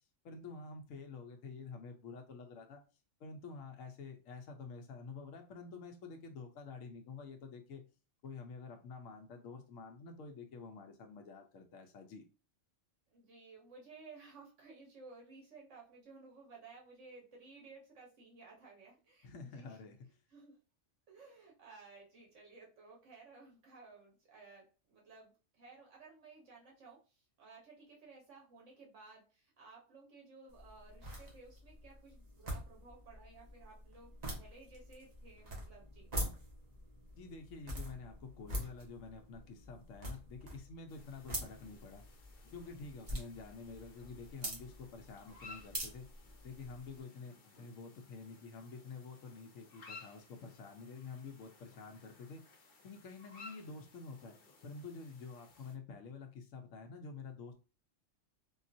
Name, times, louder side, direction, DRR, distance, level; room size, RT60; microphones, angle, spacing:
voice 1, 0.2-2.8 3.2-7.8 8.2-12.2 19.2-20.0 37.2-42.0 42.5-46.1 46.4-54.3 54.6-57.5, left 4 dB, 85° left, 4 dB, 1.0 m, -49 dB
voice 2, 13.1-19.9 20.3-20.6 21.1-36.1, right 4 dB, 70° right, -3 dB, 1.3 m, -57 dB
sound 1, 30.5-47.0, equal, 35° right, 1.0 m, -46 dB
sound 2, 40.9-55.8, left 4 dB, 50° left, 0.9 m, -58 dB
3.7 x 2.3 x 2.6 m, 0.33 s
omnidirectional pair, 1.3 m